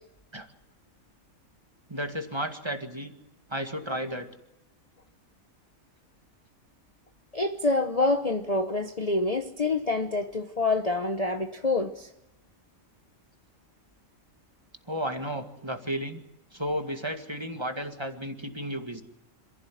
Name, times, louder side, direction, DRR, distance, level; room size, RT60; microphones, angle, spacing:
voice 1, 1.9-3.1 3.5-4.3 14.9-16.2 16.5-19.0, equal, 20° right, 2.0 m, -33 dB
voice 2, 7.3-12.1, left 2 dB, 30° left, 1.1 m, -27 dB
27.5 x 15.0 x 9.3 m
omnidirectional pair, 1.5 m